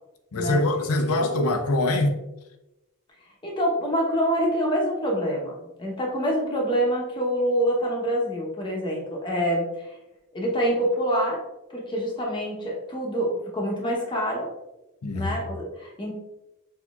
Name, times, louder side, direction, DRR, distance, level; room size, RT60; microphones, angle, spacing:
voice 1, 0.3-2.1 15.0-15.4, left 1 dB, 85° left, 0.6 m, -23 dB
voice 2, 3.4-9.6 10.3-11.4 11.7-14.5 15.1-16.2, equal, 20° left, 0.9 m, -26 dB
6.0 x 2.8 x 2.4 m
head